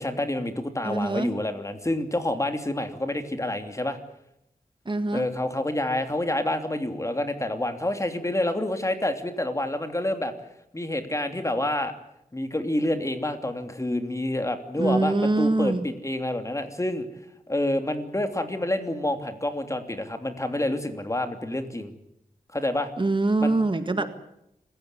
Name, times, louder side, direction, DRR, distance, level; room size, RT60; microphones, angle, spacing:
voice 1, 0.0-4.0 5.1-10.3 10.7-11.9 12.3-17.1 17.5-21.9 22.5-22.9 23.4-23.5 24.0-24.1, left 1 dB, 20° left, 7 dB, 3.0 m, -28 dB
voice 2, 0.8-1.3 4.9-5.3 14.8-15.9 23.0-24.1, right 2 dB, 35° right, 9 dB, 1.8 m, -24 dB
26.5 x 15.5 x 9.8 m, 0.82 s
wide cardioid pair, 75°, 15 cm